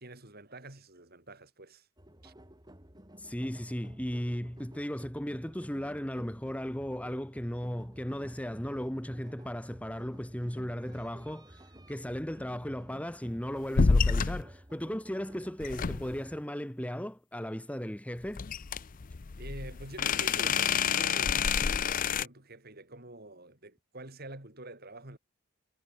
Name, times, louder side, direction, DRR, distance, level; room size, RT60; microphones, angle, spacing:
voice 1, 0.0-1.9 2.2-2.3 19.4-25.2, right 2 dB, 45° right, 4.5 m, -47 dB
sound 1, 2.0-16.4, equal, 20° right, 5.3 m, -53 dB
voice 2, 3.2-18.5, equal, 5° left, 1.5 m, -36 dB
sound 2, 13.7-14.4 15.6-16.2 18.4-22.3, left 5 dB, 40° left, 0.5 m, -28 dB
head